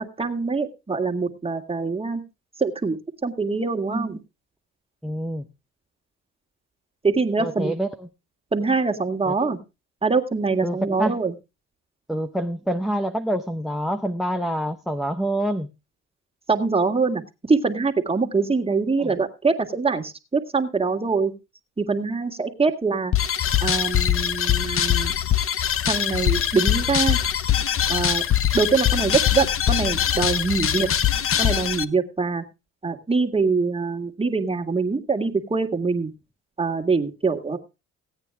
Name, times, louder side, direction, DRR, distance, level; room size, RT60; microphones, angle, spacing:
voice 1, 0.0-2.2 2.6-3.0 3.2-4.2 7.0-7.7 8.5-9.6 10.0-11.3 16.5-21.3 21.8-23.1 23.6-25.1 25.9-27.2 27.9-28.2 28.5-30.9 31.4-32.4 32.8-36.1 36.6-37.6, right 4 dB, 20° right, 2 dB, 1.8 m, -24 dB
voice 2, 5.0-5.4 7.4-7.9 9.3-9.5 10.6-11.2 12.1-15.7 19.0-19.1, right 1 dB, ahead, 10 dB, 0.7 m, -26 dB
sound 1, 23.1-31.8, left 10 dB, 45° left, 0.8 m, -22 dB
16.0 x 9.0 x 3.5 m, 0.27 s
cardioid pair, 90°, 30 cm